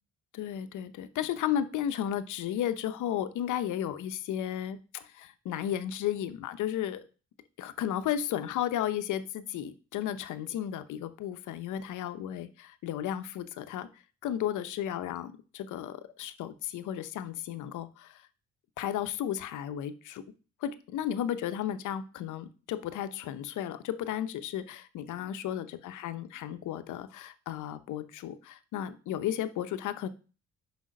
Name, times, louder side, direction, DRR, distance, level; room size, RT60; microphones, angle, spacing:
voice 1, 0.3-7.0 7.6-13.9 14.2-18.2 18.8-20.2 20.6-30.1, left 10 dB, 80° left, 12 dB, 0.8 m, -34 dB
6.3 x 5.1 x 5.2 m, 0.36 s
cardioid pair, 90°, 30 cm